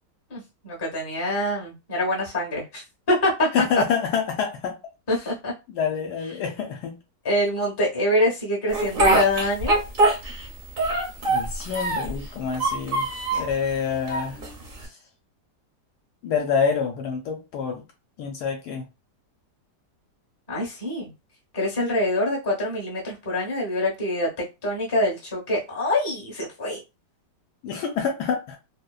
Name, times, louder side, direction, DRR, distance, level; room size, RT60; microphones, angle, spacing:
voice 1, 0.3-3.5 5.1-5.5 7.2-9.8 20.5-21.1 21.5-26.8, left 1 dB, 20° left, 0.7 m, -25 dB
voice 2, 3.5-4.8 5.7-7.0 11.3-14.4 14.8-14.9 16.2-17.8 18.2-18.8 27.6-28.6, left 6 dB, 75° left, 1.1 m, -27 dB
Speech, 8.7-10.5 10.8-12.2 12.5-13.5 14.1-14.8, right 2 dB, 50° right, 0.6 m, -23 dB
2.8 x 2.1 x 2.3 m
omnidirectional pair, 1.9 m